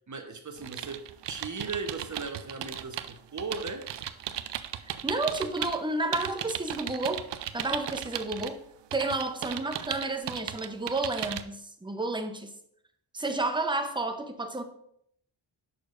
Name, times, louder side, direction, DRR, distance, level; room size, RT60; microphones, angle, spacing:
voice 1, 0.1-3.9, right 4 dB, 40° right, 6 dB, 1.0 m, -37 dB
sound 1, 0.6-5.8 6.1-8.5 8.9-11.4, right 10 dB, 65° right, 0.5 m, -36 dB
voice 2, 4.8-7.3 7.5-8.6 8.9-12.5 13.1-14.6, right 2 dB, 10° right, 6 dB, 0.7 m, -31 dB
6.8 x 6.1 x 2.5 m, 0.70 s
cardioid pair, 50°, 46 cm